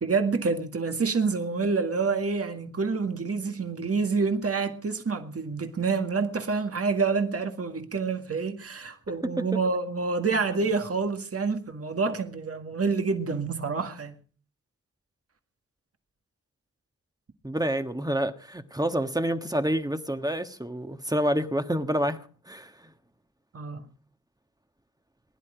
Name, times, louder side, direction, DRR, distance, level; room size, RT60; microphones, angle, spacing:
voice 1, 0.0-14.2 23.5-23.9, right 4 dB, 50° right, 1.8 m, -27 dB
voice 2, 17.4-22.9, equal, 10° right, 1.4 m, -28 dB
21.0 x 11.0 x 5.0 m
wide cardioid pair, 75°, 30 cm